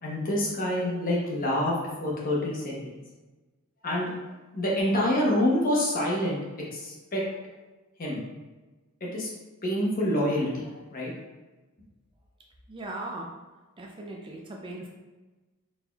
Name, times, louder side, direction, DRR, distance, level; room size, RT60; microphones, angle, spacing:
voice 1, 0.0-2.9 3.8-4.1 4.5-7.3 8.0-8.2 9.0-9.3 9.6-11.1, left 1 dB, 40° left, -4 dB, 1.0 m, -27 dB
voice 2, 12.7-13.3 13.8-14.9, right 2 dB, 25° right, -1 dB, 0.4 m, -38 dB
4.1 x 3.6 x 2.3 m, 1.2 s
head